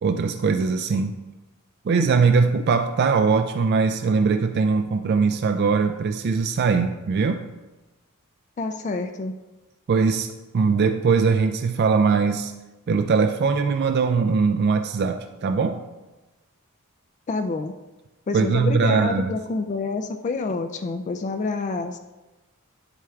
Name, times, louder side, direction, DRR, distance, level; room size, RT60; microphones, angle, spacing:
voice 1, 0.0-1.2 1.8-7.4 9.9-12.5 12.9-15.8 18.3-19.3, right 5 dB, 50° right, 7 dB, 0.3 m, -21 dB
voice 2, 8.6-9.4 17.3-17.7 18.3-22.0, left 3 dB, 35° left, 7 dB, 0.3 m, -28 dB
9.7 x 7.7 x 2.3 m, 1.1 s
head